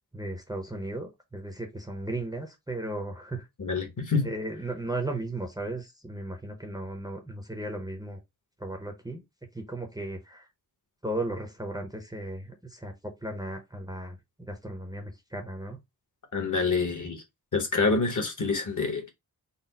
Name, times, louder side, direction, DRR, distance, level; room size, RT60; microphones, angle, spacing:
voice 1, 0.1-3.5 4.2-8.2 8.6-9.2 9.5-10.5 11.0-15.8, right 1 dB, 10° right, 0.6 m, -36 dB
voice 2, 3.6-4.3 16.3-17.2 17.5-19.1, left 4 dB, 50° left, 1.0 m, -27 dB
4.1 x 2.0 x 3.9 m
wide cardioid pair, 145°, 39 cm